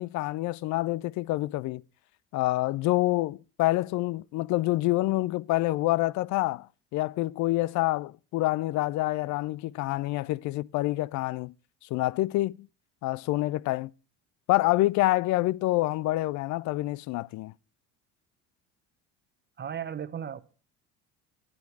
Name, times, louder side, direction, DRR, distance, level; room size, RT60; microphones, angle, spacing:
voice 1, 0.0-1.8 2.3-6.7 6.9-11.5 11.9-12.7 13.0-13.9 14.5-17.5, left 18 dB, 55° left, 0.4 m, -27 dB
voice 2, 19.6-20.4, right 8 dB, 30° right, 0.9 m, -35 dB
11.0 x 9.8 x 4.6 m
supercardioid pair, 80°, 34 cm